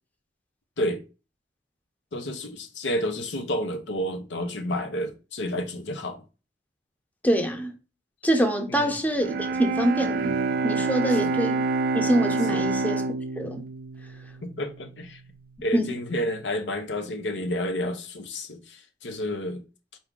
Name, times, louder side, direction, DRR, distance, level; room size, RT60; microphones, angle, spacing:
voice 1, 2.1-6.2 8.7-8.9 11.2-11.3 12.5-12.7 14.4-15.2 15.6-19.6, left 1 dB, 85° left, 0.7 m, -30 dB
voice 2, 7.2-7.7 8.2-9.3 9.6-10.3 10.6-11.6 11.9-13.0 13.4-13.6 15.7-15.9, right 1 dB, 10° left, 0.7 m, -24 dB
Bowed string instrument, 9.2-15.2, right 3 dB, 55° right, 0.4 m, -27 dB
4.6 x 2.7 x 3.7 m
head